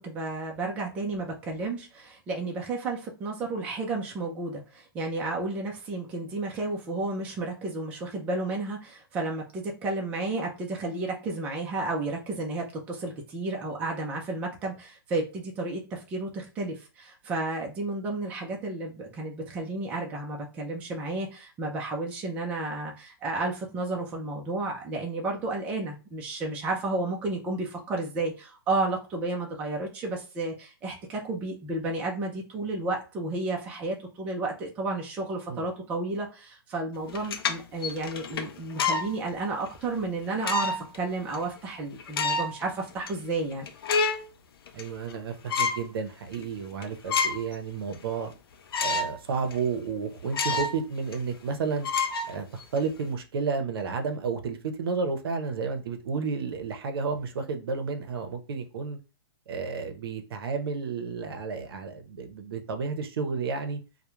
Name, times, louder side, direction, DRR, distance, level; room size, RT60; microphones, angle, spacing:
voice 1, 0.0-43.7, right 2 dB, 10° right, 0.3 m, -32 dB
sound 1, 37.1-39.1 39.6-39.8 40.4-41.0 41.3-41.4 42.0-42.6 43.1-43.2 43.5-44.3 44.7-45.2 45.5-45.9 46.3-46.4 46.8-47.5 47.9-48.0 48.7-49.2 49.5-49.6 50.3-50.8 51.1-51.2 51.8-52.8, left 4 dB, 65° left, 0.5 m, -28 dB
voice 2, 44.7-48.3 48.8-51.9 52.3-59.0 59.5-63.8, right 5 dB, 70° right, 0.6 m, -31 dB
2.3 x 2.1 x 3.0 m
hypercardioid pair, 155°, 13 cm